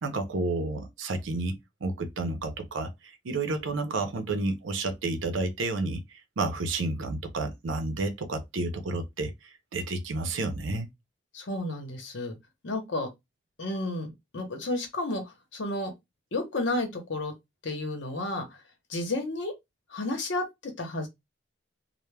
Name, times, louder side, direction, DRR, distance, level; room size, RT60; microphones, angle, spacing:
voice 1, 0.0-1.6 1.8-6.0 6.4-10.9, right 2 dB, 90° right, 0.6 m, -31 dB
voice 2, 11.3-12.4 12.6-13.1 13.6-15.9 16.3-17.3 17.6-18.6 18.9-19.5 19.9-21.1, left 2 dB, 75° left, 0.8 m, -32 dB
2.2 x 2.1 x 3.2 m
head